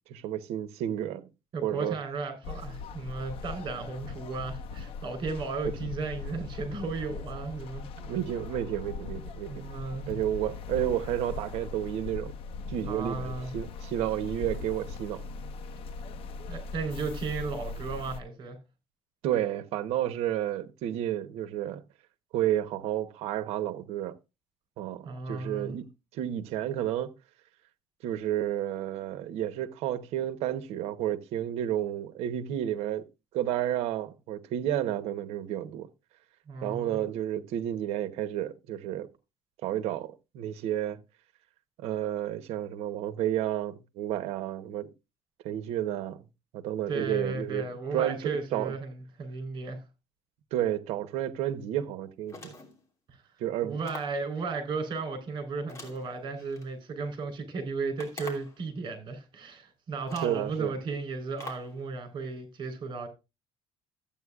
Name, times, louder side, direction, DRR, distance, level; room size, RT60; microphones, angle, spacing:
voice 1, 0.1-1.3 1.6-2.0 8.0-9.6 10.1-12.3 12.7-15.2 19.2-21.8 22.3-24.2 24.8-27.1 28.0-33.1 33.3-35.9 36.6-39.1 39.6-41.0 41.8-44.9 45.4-46.2 46.5-48.7 50.5-52.6 53.4-53.8 60.2-60.7, right 12 dB, 85° right, 1.0 m, -31 dB
voice 2, 1.5-7.9 9.5-10.2 12.9-13.5 16.5-18.6 25.0-25.7 36.5-37.0 46.9-49.8 53.6-63.1, right 4 dB, 50° right, 3.8 m, -35 dB
sound 1, 2.4-18.2, left 4 dB, 60° left, 1.0 m, -40 dB
sound 2, 52.3-52.8 53.8-54.2 55.7-56.7 58.0-58.6 59.5-59.6 60.1-60.4 61.4-61.8, left 3 dB, 30° left, 2.8 m, -45 dB
14.5 x 8.8 x 2.4 m
cardioid pair, 140°, 10 cm